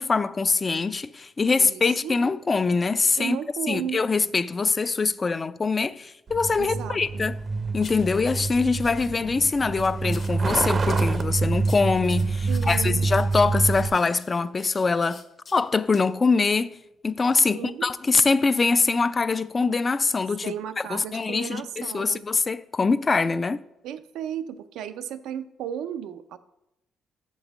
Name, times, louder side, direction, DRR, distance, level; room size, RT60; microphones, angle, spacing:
voice 1, 0.0-3.4 3.7-7.4 7.7-15.2 15.5-16.7 17.0-20.5 20.9-23.6, left 4 dB, 30° left, 0.4 m, -23 dB
voice 2, 1.6-2.2 3.2-4.0 6.6-7.2 12.5-13.1 17.4-17.9 20.4-22.2 23.8-26.4, right 9 dB, 90° right, 0.4 m, -34 dB
Truck, 6.3-13.9, right 3 dB, 40° right, 0.6 m, -26 dB
sound 1, 7.8-9.1 9.6-10.4 10.9-15.6 15.9-16.1 16.4-16.6, left 4 dB, 50° left, 1.0 m, -47 dB
6.4 x 5.3 x 5.9 m
cardioid pair, 90°, 0 cm